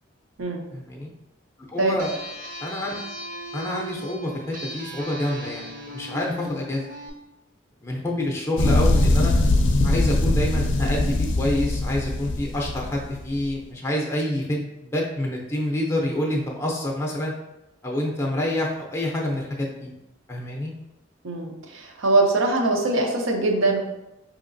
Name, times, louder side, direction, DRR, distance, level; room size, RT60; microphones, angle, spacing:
voice 1, 0.7-1.1 1.7-2.2 2.6-2.9 3.5-6.8 7.8-9.3 9.8-17.3 17.8-19.9 20.3-20.7, left 1 dB, 15° left, -2 dB, 0.5 m, -27 dB
sound 1, 2.0-7.1, equal, 40° right, 0.6 m, -37 dB
sound 2, 8.6-13.4, left 2 dB, 65° left, 0.4 m, -21 dB
voice 2, 21.2-23.8, right 2 dB, 80° right, 2 dB, 0.7 m, -22 dB
4.8 x 2.8 x 2.6 m, 0.93 s
head